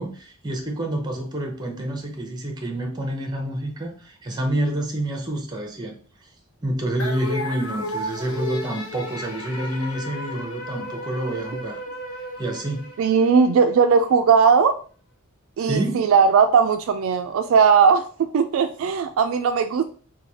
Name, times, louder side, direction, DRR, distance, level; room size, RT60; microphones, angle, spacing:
voice 1, 0.0-5.9 6.6-11.8 12.4-12.9 15.6-16.1, right 1 dB, 20° right, 3 dB, 0.8 m, -28 dB
sound 1, 7.0-13.5, left 1 dB, 85° left, 0.7 m, -33 dB
voice 2, 13.0-14.8 15.6-19.8, right 6 dB, 65° right, 8 dB, 0.3 m, -18 dB
3.1 x 2.3 x 4.0 m, 0.41 s
head